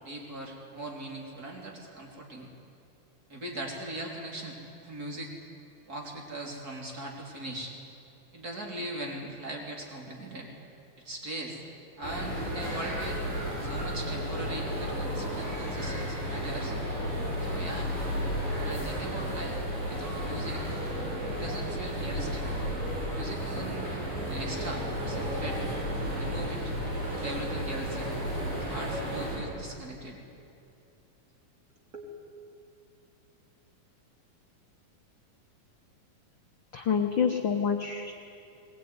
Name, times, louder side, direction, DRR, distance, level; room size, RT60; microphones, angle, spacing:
voice 1, 0.0-2.5 3.3-5.3 5.9-7.7 8.3-10.5 11.0-11.6 12.0-13.2 13.6-16.7 17.4-17.9 18.6-20.6 21.3-22.5 23.1-23.9 24.3-25.7 26.2-26.7 27.1-28.2 28.7-30.2 31.9-32.1, right 1 dB, 30° right, -1 dB, 3.6 m, -40 dB
sound 1, 12.0-29.4, equal, 85° right, 9.2 m, -33 dB
voice 2, 36.7-38.1, left 6 dB, 80° left, 3 dB, 1.0 m, -27 dB
20.5 x 20.5 x 9.6 m, 2.6 s
omnidirectional pair, 3.7 m